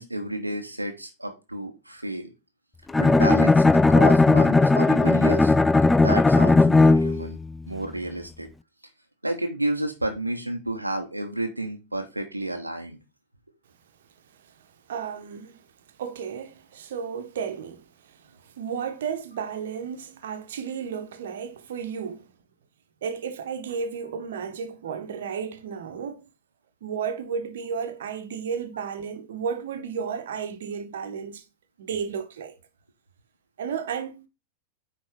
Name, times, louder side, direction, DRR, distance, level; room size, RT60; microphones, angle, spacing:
voice 1, 0.0-2.3 3.0-5.5 6.0-7.4 7.7-8.5 9.2-13.0, right 1 dB, 85° right, 1.0 m, -31 dB
Bowed string instrument, 2.9-7.3, left 3 dB, 10° left, 0.3 m, -17 dB
voice 2, 14.9-15.6 16.0-17.8 18.1-22.3 23.0-26.2 26.8-31.4 31.8-32.6 33.6-34.3, right 6 dB, 60° right, 1.3 m, -33 dB
9.4 x 3.8 x 4.8 m
figure-of-eight pair, 90°, 0 cm